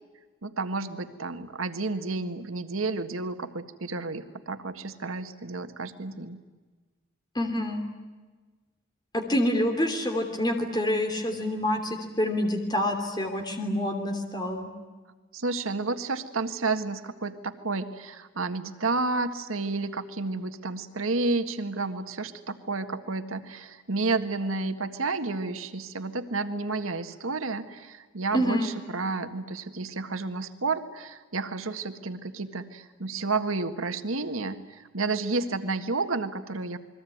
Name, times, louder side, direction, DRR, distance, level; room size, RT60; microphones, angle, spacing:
voice 1, 0.4-6.4 15.3-36.8, right 3 dB, 90° right, 8 dB, 1.7 m, -31 dB
voice 2, 7.3-7.8 9.1-14.7 28.3-28.7, left 1 dB, 20° left, 5 dB, 3.0 m, -27 dB
29.0 x 22.0 x 9.4 m, 1.3 s
head